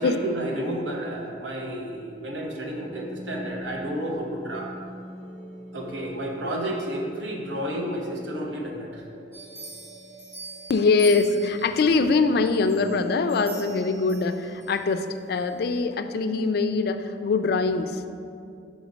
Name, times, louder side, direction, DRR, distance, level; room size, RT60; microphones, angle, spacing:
voice 1, 0.0-4.7 5.7-9.0, right 1 dB, 80° right, 0 dB, 0.9 m, -31 dB
sound 1, 1.3-15.2, equal, 40° right, 1.0 m, -44 dB
sound 2, 9.3-11.9 12.4-14.8 15.3-15.4, right 2 dB, 15° right, 1.6 m, -43 dB
voice 2, 10.7-18.1, left 4 dB, 55° left, 9 dB, 0.3 m, -23 dB
5.2 x 5.0 x 5.0 m, 2.4 s
head